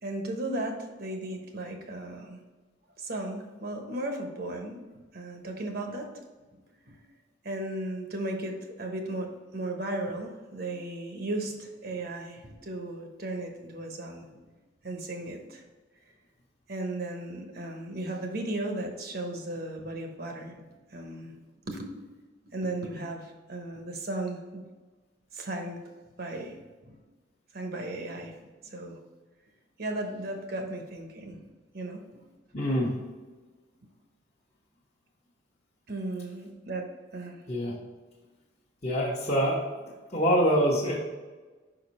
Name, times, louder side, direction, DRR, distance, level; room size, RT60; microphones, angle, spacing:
voice 1, 0.0-2.4 3.0-4.8 5.1-6.2 6.5-7.0 7.4-14.3 14.8-15.6 16.7-20.6 20.9-21.4 21.6-21.9 22.4-24.6 25.3-25.8 26.2-26.5 26.8-27.0 27.5-28.3 28.6-29.0 29.8-31.4 31.7-32.2 35.9-37.4, right 1 dB, 55° right, 3 dB, 1.1 m, -35 dB
voice 2, 32.5-32.9 37.5-37.8 38.8-39.6 40.1-41.0, equal, 35° left, -6 dB, 1.1 m, -25 dB
5.5 x 5.0 x 4.2 m, 1.3 s
head